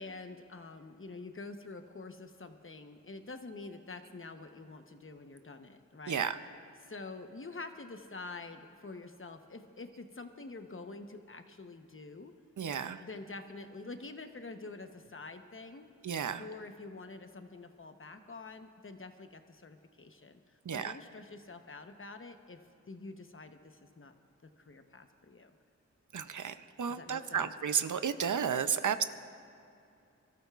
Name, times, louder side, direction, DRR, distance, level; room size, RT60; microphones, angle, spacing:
voice 1, 0.0-6.3 6.8-12.3 13.0-15.9 16.4-22.6 22.9-24.1 24.4-25.5 26.9-27.5, left 3 dB, 45° left, 7 dB, 1.0 m, -47 dB
voice 2, 6.1-6.4 12.6-13.0 16.0-16.5 20.7-20.9 26.1-29.0, right 7 dB, 90° right, 11 dB, 0.6 m, -32 dB
26.0 x 13.5 x 2.4 m, 2.6 s
cardioid pair, 45°, 30 cm